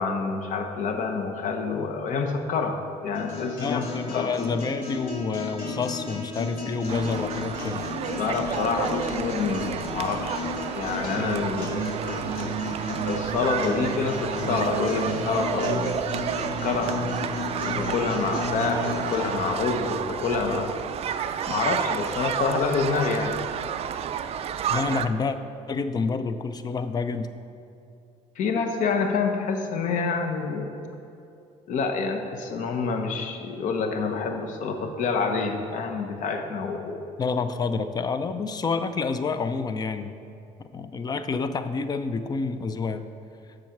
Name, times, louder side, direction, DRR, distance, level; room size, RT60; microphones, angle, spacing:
voice 1, 0.0-4.3 8.2-10.4 10.7-12.5 13.0-15.9 16.4-16.9 17.6-20.7 21.5-23.4 28.4-30.7 31.7-37.0, left 5 dB, 60° left, 5 dB, 1.0 m, -27 dB
sound 1, 3.1-19.2, left 2 dB, 80° left, 2.2 m, -33 dB
voice 2, 3.6-7.9 24.7-25.4 25.7-27.3 37.2-40.1 40.7-43.1, left 4 dB, 25° left, 10 dB, 0.5 m, -28 dB
sound 2, 6.9-25.1, right 8 dB, 45° right, 0.4 m, -31 dB
7.6 x 6.4 x 5.9 m, 2.6 s
cardioid pair, 120°, 15 cm